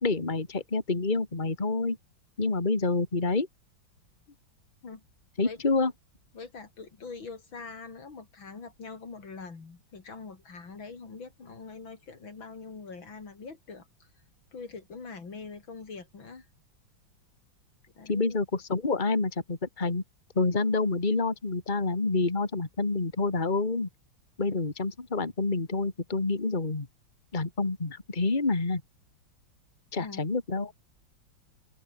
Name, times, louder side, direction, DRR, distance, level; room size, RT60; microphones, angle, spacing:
voice 1, 0.0-2.0 2.4-3.5 5.4-5.9 18.1-20.0 20.4-23.9 24.4-26.9 27.3-28.8 29.9-30.7, left 3 dB, 25° left, 2.5 m, -28 dB
voice 2, 6.3-14.1 14.5-16.5 18.0-18.4 30.0-30.2, left 4 dB, 80° left, 4.3 m, -43 dB
omnidirectional pair, 2.1 m